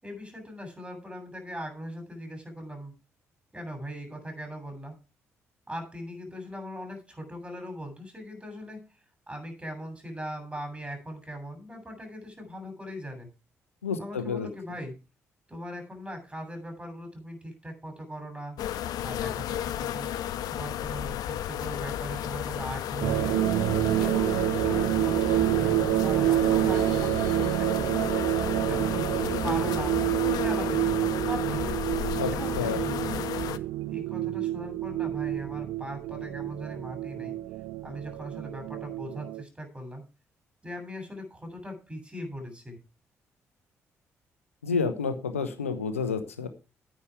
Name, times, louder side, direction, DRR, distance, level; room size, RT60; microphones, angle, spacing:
voice 1, 0.0-2.9 3.5-5.0 5.7-8.8 9.3-13.3 14.0-15.0 15.5-18.6 19.0-20.1 20.5-23.4 23.9-28.1 28.7-30.0 30.3-31.8 32.3-33.3 33.9-37.3 37.8-40.0 40.6-42.8, equal, 15° right, 5 dB, 7.9 m, -39 dB
voice 2, 13.8-14.5 32.2-32.3 32.5-32.8 44.6-46.5, left 5 dB, 90° left, 9 dB, 0.9 m, -29 dB
sound 1, 18.6-33.6, left 11 dB, 65° left, 0.7 m, -33 dB
sound 2, 23.0-39.4, right 15 dB, 70° right, 0.5 m, -28 dB
10.5 x 9.8 x 4.8 m, 0.32 s
figure-of-eight pair, 40°, 7 cm